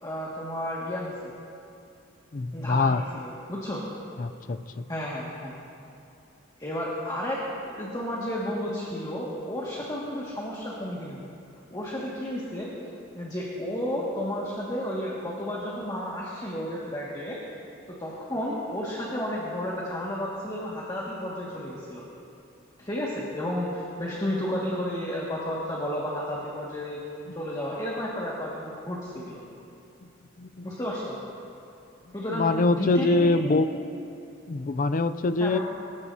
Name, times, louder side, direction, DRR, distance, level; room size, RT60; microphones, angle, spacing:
voice 1, 0.0-1.3 2.5-3.8 4.9-5.5 6.6-11.2 11.7-12.7 13.1-17.4 17.9-22.0 22.8-27.0 27.3-29.4 30.6-31.2 32.1-33.9 35.4-35.6, equal, 20° left, -6 dB, 2.0 m, -32 dB
voice 2, 2.3-3.0 4.2-4.8 30.4-30.7 32.3-33.7 34.5-35.6, left 3 dB, 40° left, 11 dB, 0.4 m, -24 dB
27.0 x 15.5 x 2.8 m, 2.6 s
head